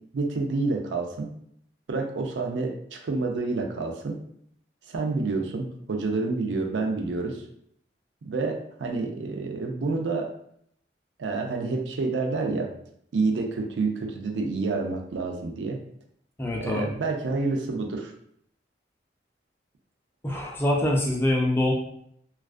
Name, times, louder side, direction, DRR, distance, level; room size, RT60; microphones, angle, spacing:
voice 1, 0.1-1.3 1.9-4.2 4.9-7.4 8.2-10.3 11.2-12.7 13.1-15.8 16.6-18.1, right 3 dB, 80° right, 3 dB, 0.4 m, -28 dB
voice 2, 16.4-16.9 20.2-21.7, left 1 dB, 10° left, -1 dB, 0.3 m, -24 dB
2.3 x 2.3 x 2.4 m, 0.70 s
head